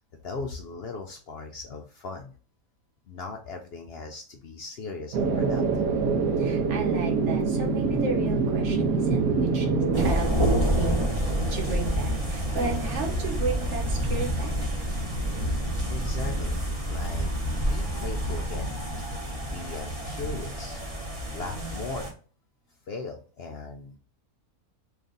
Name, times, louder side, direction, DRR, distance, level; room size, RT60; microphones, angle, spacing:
voice 1, 0.2-2.3 3.1-5.9 15.9-16.6 16.9-17.3 17.7-18.8 19.3-20.8 21.3-22.2 22.9-24.0, left 4 dB, 70° left, 3 dB, 0.5 m, -38 dB
sound 1, 5.1-10.1, right 4 dB, 75° right, 1.1 m, -25 dB
voice 2, 6.4-9.7 10.0-11.1 11.5-14.6 21.4-21.7, right 4 dB, 55° right, 1 dB, 1.3 m, -33 dB
sound 2, 9.9-22.1, right 1 dB, 25° right, 1.0 m, -28 dB
3.2 x 2.5 x 3.7 m, 0.40 s
omnidirectional pair, 1.6 m